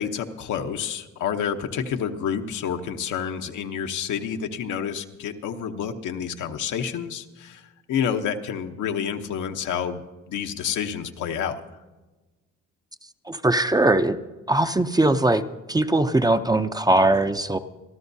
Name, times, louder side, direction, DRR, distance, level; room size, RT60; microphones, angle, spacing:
voice 1, 0.0-7.6 7.9-10.0 10.3-11.6, left 8 dB, 80° left, 6 dB, 1.0 m, -29 dB
voice 2, 13.3-14.2 14.5-15.4 15.7-17.6, right 2 dB, 15° right, 9 dB, 0.5 m, -20 dB
25.5 x 13.0 x 2.7 m, 1.2 s
cardioid pair, 90°, 30 cm